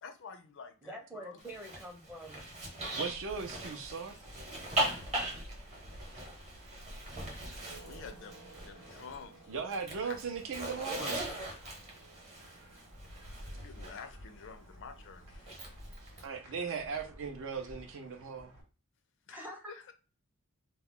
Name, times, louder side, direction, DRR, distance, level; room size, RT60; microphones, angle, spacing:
voice 1, 0.0-1.4 7.4-9.5 10.0-10.2 10.6-11.7 13.5-15.6 16.3-16.7 19.3-19.9, left 5 dB, 60° left, 0.4 m, -50 dB
voice 2, 0.8-2.5 19.3-19.7, equal, 10° right, 0.6 m, -46 dB
Zipper (clothing), 1.4-9.2 9.5-14.0 15.4-16.2, right 1 dB, 30° right, 0.9 m, -40 dB
voice 3, 2.9-4.1 9.5-11.1 16.2-18.5, right 5 dB, 60° right, 0.5 m, -38 dB
sound 1, 3.0-18.6, equal, 80° right, 0.8 m, -52 dB
2.3 x 2.0 x 3.6 m
head